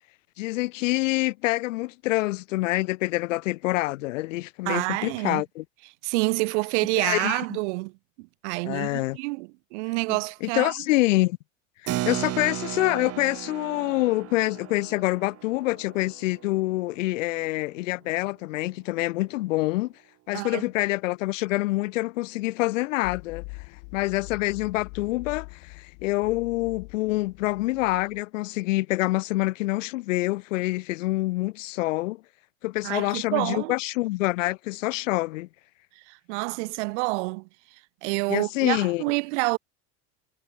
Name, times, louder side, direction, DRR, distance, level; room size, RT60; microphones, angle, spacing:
voice 1, 0.4-5.6 7.0-7.6 8.6-9.2 10.1-11.4 11.8-19.9 20.3-23.4 23.9-32.2 32.6-35.5 38.3-39.0, left 19 dB, 85° left, 1.0 m, -26 dB
voice 2, 4.7-5.4 6.0-7.9 8.2-10.7 20.3-20.6 32.8-33.7 36.1-37.5 38.0-39.6, right 28 dB, 70° right, 0.7 m, -28 dB
Keyboard (musical), 11.9-17.9, right 14 dB, 40° right, 2.4 m, -36 dB
sound 1, 23.0-28.2, left 40 dB or more, 60° left, 1.8 m, -43 dB
supercardioid pair, 130°, 37 cm